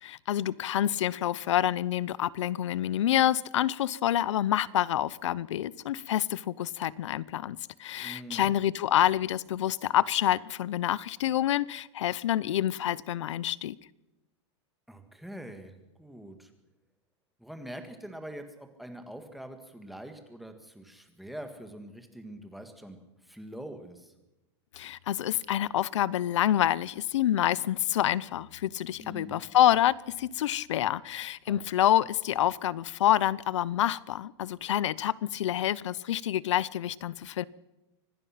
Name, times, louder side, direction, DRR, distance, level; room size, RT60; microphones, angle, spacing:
voice 1, 0.0-13.8 24.7-37.4, left 12 dB, 85° left, 21 dB, 0.8 m, -27 dB
voice 2, 8.0-8.5 14.9-16.5 17.4-24.1 29.0-29.4 31.5-31.6, right 1 dB, ahead, 6 dB, 1.8 m, -44 dB
25.5 x 18.0 x 5.9 m, 0.99 s
supercardioid pair, 170°, 15 cm